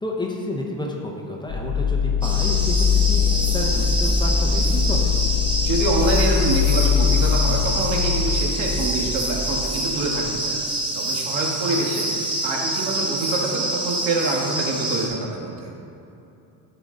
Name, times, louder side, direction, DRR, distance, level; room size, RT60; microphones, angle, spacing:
voice 1, 0.0-5.1 11.7-11.8, left 1 dB, 10° left, -1 dB, 0.9 m, -30 dB
sound 1, 1.5-10.2, left 6 dB, 45° left, 0.8 m, -22 dB
sound 2, 2.2-15.1, right 1 dB, 10° right, 1.3 m, -26 dB
voice 2, 5.6-10.6 10.9-12.1 12.4-15.7, right 2 dB, 80° right, -1 dB, 1.8 m, -26 dB
14.5 x 5.0 x 3.9 m, 2.7 s
cardioid pair, 140°, 45 cm